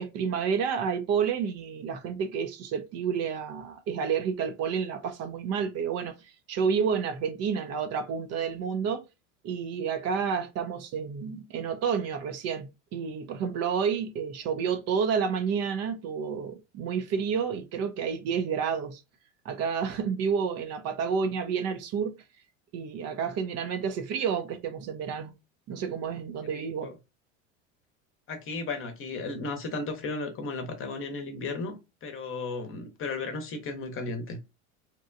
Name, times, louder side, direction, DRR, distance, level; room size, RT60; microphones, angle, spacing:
voice 1, 0.0-9.0 9.4-19.0 19.4-22.1 22.7-25.3 25.7-26.9, right 6 dB, 40° right, 0.5 m, -30 dB
voice 2, 26.5-26.9 28.3-34.4, left 3 dB, 35° left, 0.8 m, -35 dB
2.9 x 2.2 x 2.5 m
hypercardioid pair, 95°, 38 cm